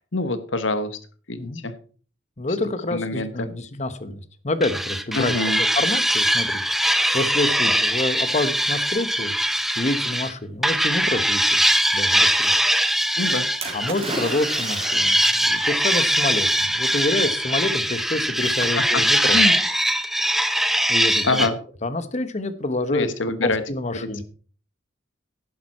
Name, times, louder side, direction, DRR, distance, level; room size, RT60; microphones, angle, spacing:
voice 1, 0.1-1.0 1.3-1.7 2.9-3.5 5.1-5.6 13.2-13.5 18.4-18.8 19.2-19.5 21.2-21.5 22.9-23.6, left 3 dB, 70° left, 11 dB, 1.3 m, -25 dB
voice 2, 2.4-6.6 7.1-9.3 9.8-11.6 11.9-12.5 13.7-19.4 20.9-21.5 21.8-23.1 23.4-24.2, left 2 dB, 35° left, 13 dB, 1.1 m, -27 dB
sound 1, 4.6-10.3 10.6-21.5, equal, ahead, 0.8 m, -22 dB
Splash splatter, 13.6-15.4 16.3-16.4, right 2 dB, 30° right, 3.2 m, -33 dB
11.0 x 11.0 x 4.3 m, 0.41 s
head